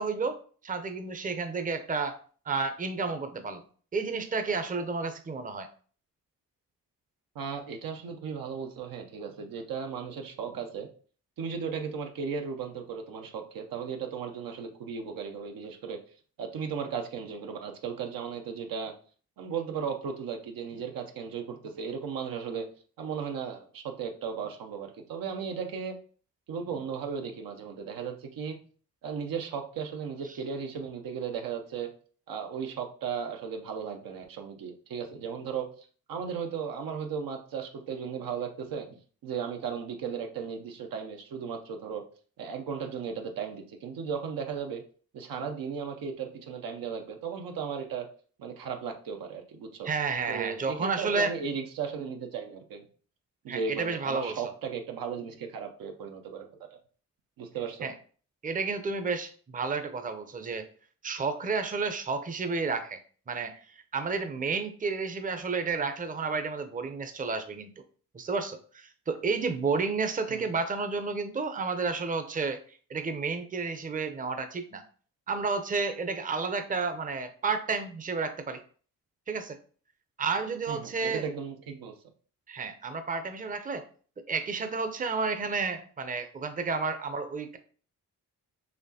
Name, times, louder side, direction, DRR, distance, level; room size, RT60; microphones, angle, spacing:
voice 1, 0.0-2.2 2.5-3.6 3.9-5.7 49.8-51.3 53.5-54.4 57.8-57.9 58.4-60.7 61.0-63.0 63.3-67.7 68.1-72.6 72.9-74.8 75.3-78.6 79.3-79.6 80.2-81.2 82.5-83.8 84.3-87.6, right 4 dB, 25° right, 8 dB, 0.6 m, -31 dB
voice 2, 7.3-10.9 11.4-16.0 16.4-18.9 19.4-22.7 23.0-26.0 26.5-28.6 29.0-31.9 32.3-35.7 36.1-42.0 42.4-44.8 45.1-48.1 48.4-49.9 50.3-52.9 53.4-56.8 57.4-57.9 70.3-70.4 80.7-82.0, right 6 dB, 75° right, 4 dB, 0.7 m, -36 dB
4.2 x 2.9 x 2.8 m, 0.43 s
supercardioid pair, 55°, 35 cm